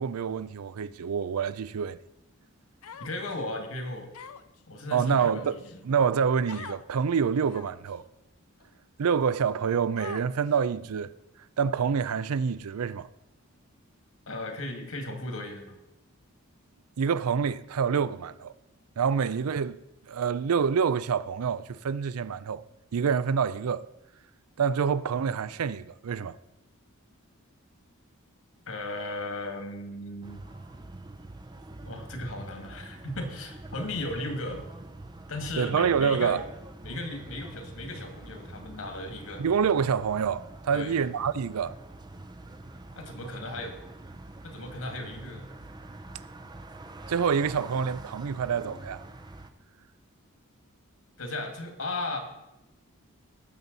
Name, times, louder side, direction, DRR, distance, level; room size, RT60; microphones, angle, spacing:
voice 1, 0.0-2.0 4.9-5.6 5.8-8.0 9.0-11.1 11.6-13.1 17.0-18.5 19.0-19.8 20.1-22.6 22.9-23.9 24.6-26.4 35.6-36.4 39.4-41.8 47.1-49.0, right 6 dB, 85° right, 0.4 m, -27 dB
Human voice, 2.8-3.4 4.1-4.6 5.2-5.8 6.5-6.8 7.5-7.9 8.6-8.7 10.0-10.6, left 7 dB, 85° left, 0.6 m, -44 dB
voice 2, 3.0-4.1 4.7-5.8 14.3-15.8 28.7-30.4 31.8-34.6 35.3-36.4 36.8-39.5 40.7-41.0 43.0-43.8 44.4-45.4 51.2-52.2, left 2 dB, 70° left, 2.1 m, -36 dB
sound 1, 30.2-49.5, right 2 dB, 20° right, 0.5 m, -45 dB
18.5 x 7.1 x 4.0 m
head